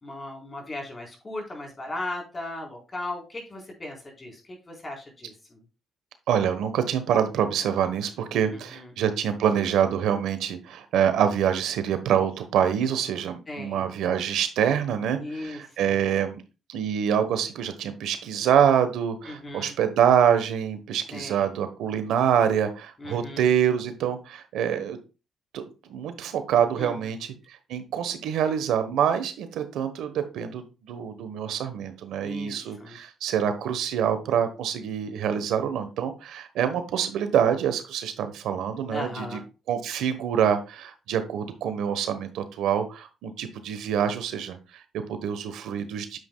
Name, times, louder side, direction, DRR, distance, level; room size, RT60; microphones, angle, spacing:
voice 1, 0.0-5.6 8.5-8.9 13.5-13.9 15.2-16.0 19.3-19.7 21.1-21.5 23.0-23.5 26.8-27.1 32.2-33.0 38.9-39.4, left 2 dB, 30° left, 1 dB, 4.0 m, -37 dB
voice 2, 6.3-16.4 16.7-25.0 25.5-39.4 39.7-46.2, right 8 dB, 85° right, 9 dB, 1.1 m, -26 dB
9.4 x 7.5 x 2.3 m, 0.31 s
cardioid pair, 90°, 0 cm